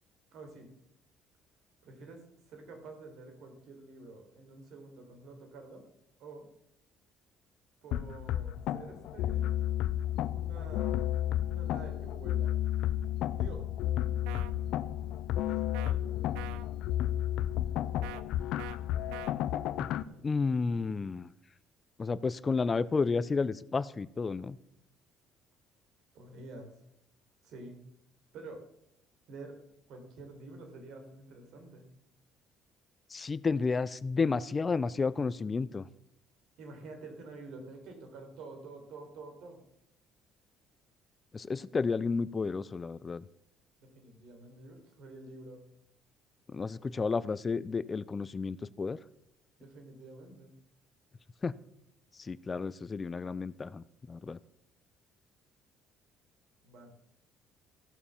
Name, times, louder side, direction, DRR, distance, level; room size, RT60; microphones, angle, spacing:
voice 1, 0.3-0.7 1.8-5.9 6.2-6.5 7.8-9.6 10.3-11.0 11.5-12.6 13.4-13.6 15.4-16.4 20.0-20.3 26.1-26.8 27.4-27.8 28.3-28.6 29.3-29.6 29.9-31.9 36.6-39.6 43.8-45.6 49.6-50.5 56.6-56.9, right 3 dB, 70° right, 4 dB, 4.1 m, -49 dB
sound 1, 7.9-20.0, left 12 dB, 75° left, 0.6 m, -32 dB
sound 2, 14.2-14.5 15.7-15.9 16.3-16.7 18.0-18.2 18.6-18.8 19.1-19.3, right 14 dB, 85° right, 0.6 m, -44 dB
voice 2, 20.2-21.3 22.0-24.6 33.1-35.8 41.3-43.2 46.5-49.0 51.4-51.5 52.2-54.4, left 4 dB, 30° left, 18 dB, 0.5 m, -31 dB
15.0 x 6.9 x 7.2 m, 0.78 s
supercardioid pair, 85°, 0 cm